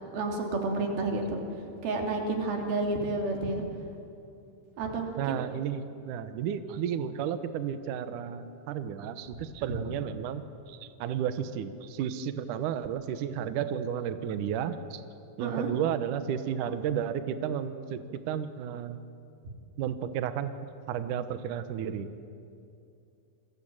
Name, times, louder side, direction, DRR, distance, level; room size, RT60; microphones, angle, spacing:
voice 1, 0.1-1.4 1.8-3.7 4.8-5.4 15.4-15.7, right 3 dB, 55° right, 2 dB, 4.7 m, -30 dB
voice 2, 5.2-15.0 15.4-19.0 19.8-20.5 20.9-22.1, right 9 dB, 85° right, 10 dB, 1.7 m, -33 dB
28.5 x 22.0 x 8.9 m, 2.6 s
omnidirectional pair, 5.4 m